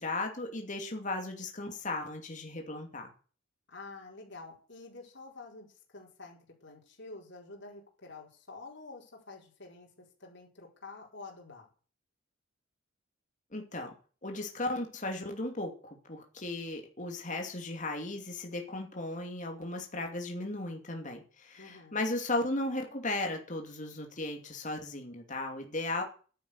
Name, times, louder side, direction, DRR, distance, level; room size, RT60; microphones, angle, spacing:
voice 1, 0.0-3.1 13.5-13.9 14.2-26.0, left 2 dB, 40° left, 3 dB, 2.6 m, -36 dB
voice 2, 3.7-11.7 21.6-22.0, left 3 dB, 60° left, -1 dB, 4.5 m, -49 dB
11.5 x 8.9 x 8.1 m, 0.39 s
head